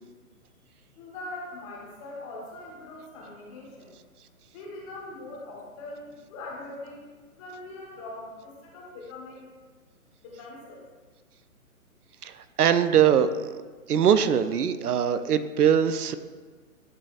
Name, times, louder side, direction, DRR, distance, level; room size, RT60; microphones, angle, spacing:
voice 1, 0.9-4.0 4.5-9.5 10.2-10.8, left 2 dB, 20° left, -3 dB, 1.1 m, -42 dB
voice 2, 12.2-13.5 13.9-16.2, right 8 dB, 80° right, 12 dB, 0.6 m, -22 dB
11.0 x 4.1 x 2.4 m, 1.4 s
figure-of-eight pair, 135°, 44 cm